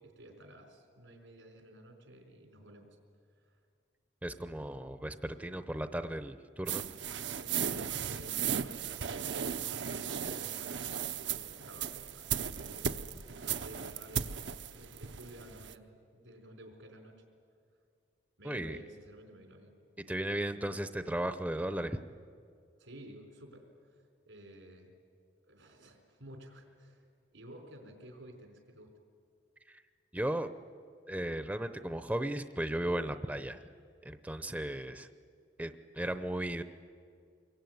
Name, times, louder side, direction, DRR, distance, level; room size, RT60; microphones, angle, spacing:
voice 1, 0.0-3.0 3.4-3.6 7.4-13.0 13.4-14.3 14.7-17.2 18.4-19.7 22.8-24.9 25.5-27.1 27.3-28.9, right 1 dB, 85° right, 3 dB, 4.6 m, -53 dB
voice 2, 4.2-6.8 18.4-18.8 20.1-22.0 29.7-29.8 30.1-30.5 31.1-33.6 34.0-35.1 35.6-36.6, right 1 dB, 10° right, 10 dB, 0.7 m, -35 dB
sound 1, 6.7-15.7, right 8 dB, 70° right, 0.8 m, -36 dB
26.0 x 22.5 x 9.4 m, 2.3 s
head